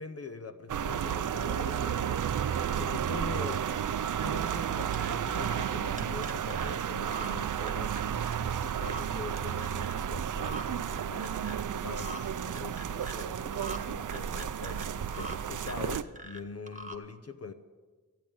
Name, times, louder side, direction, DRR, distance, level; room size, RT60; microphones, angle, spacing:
voice 1, 0.0-2.3 2.7-3.7 4.2-8.0 8.4-11.4 11.8-17.5, left 4 dB, 45° left, 9 dB, 0.8 m, -43 dB
sound 1, 0.7-16.0, right 9 dB, 65° right, 0.5 m, -32 dB
sound 2, 4.9-5.1 5.4-5.7 6.0-6.7 7.1-7.3 7.7-8.4 8.7-9.0 9.3-10.0 10.4-10.6 11.0-11.6 12.0-12.2 12.5-13.2 13.5-13.8 14.1-15.4 15.6-16.4 16.7-17.0, equal, 20° right, 1.3 m, -43 dB
15.0 x 9.0 x 8.6 m, 1.4 s
wide cardioid pair, 110°, 34 cm